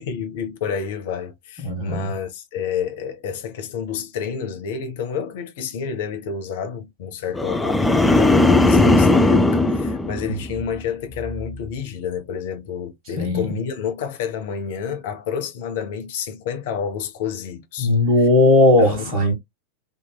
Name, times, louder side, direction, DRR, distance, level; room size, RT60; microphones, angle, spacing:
voice 1, 0.0-17.9 18.8-19.1, left 7 dB, 50° left, 0.7 m, -29 dB
voice 2, 1.6-2.1 13.2-13.5 17.8-19.3, left 2 dB, 35° right, 1.3 m, -17 dB
sound 1, 7.3-10.8 11.2-11.6, left 2 dB, 5° left, 0.3 m, -18 dB
2.9 x 2.6 x 2.2 m
figure-of-eight pair, 90°, 0 cm